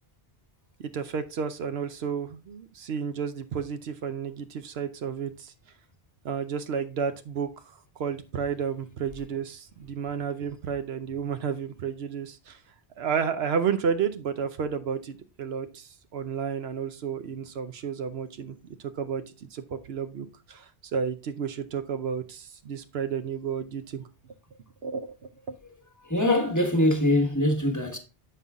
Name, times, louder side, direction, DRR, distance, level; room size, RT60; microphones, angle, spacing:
voice 1, 0.8-5.5 6.2-12.6 13.0-24.0 24.8-25.6, right 7 dB, 75° right, 0.9 m, -32 dB
voice 2, 26.0-28.0, left 1 dB, 15° left, 1.3 m, -23 dB
7.6 x 5.4 x 3.6 m
omnidirectional pair, 1.1 m